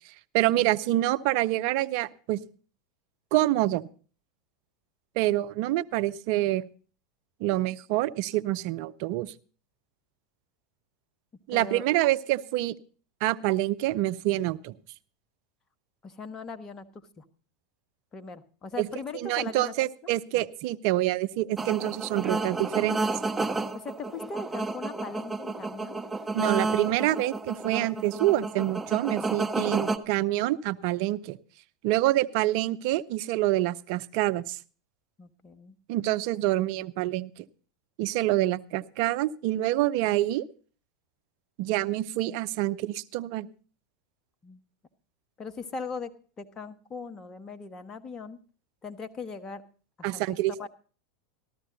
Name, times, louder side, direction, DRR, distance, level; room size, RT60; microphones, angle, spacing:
voice 1, 0.3-2.4 3.3-3.8 5.2-6.6 7.4-9.3 11.5-12.7 13.2-14.7 18.8-18.9 19.1-23.0 26.3-31.4 31.8-34.6 35.9-37.5 38.0-40.4 41.6-43.5 50.0-50.7, right 16 dB, 55° right, 14 dB, 0.6 m, -26 dB
voice 2, 11.5-11.8 16.0-16.9 17.2-17.3 18.1-19.7 23.5-26.0 29.7-29.8 35.2-35.8 38.4-38.5 44.4-44.6 45.4-48.4 48.8-49.6 50.1-50.2 50.6-50.7, left 4 dB, 30° left, 8 dB, 1.3 m, -39 dB
sound 1, 21.6-30.0, right 3 dB, 10° right, 1.1 m, -31 dB
14.0 x 13.0 x 4.0 m, 0.40 s
hypercardioid pair, 90°, 2 cm